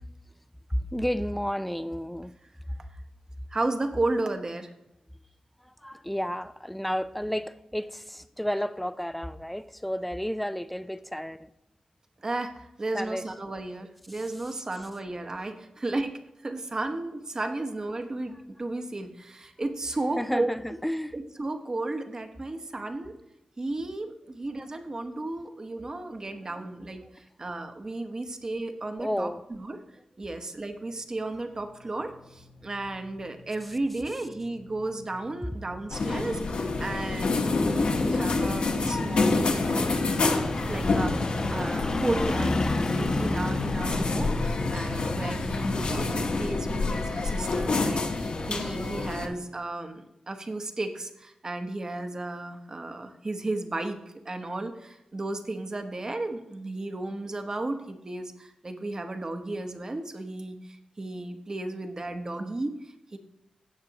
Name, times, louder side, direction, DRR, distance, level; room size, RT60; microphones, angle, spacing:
voice 1, 0.7-2.3 2.7-2.8 5.6-11.5 12.9-13.3 14.1-14.5 20.2-21.1 26.1-26.6 29.0-29.4 33.6-33.8, equal, 5° left, 12 dB, 0.4 m, -32 dB
voice 2, 3.5-4.7 12.2-20.5 21.1-23.1 23.6-27.0 27.4-29.3 29.6-29.8 30.2-39.9 40.6-42.6 42.9-54.0 54.2-63.2, right 2 dB, 30° right, 6 dB, 1.0 m, -34 dB
sound 1, 31.8-48.3 48.7-48.8, left 2 dB, 40° left, 1.1 m, -34 dB
sound 2, 35.9-49.3, left 3 dB, 65° left, 1.3 m, -28 dB
16.5 x 6.6 x 2.9 m, 0.87 s
wide cardioid pair, 110°, 2 cm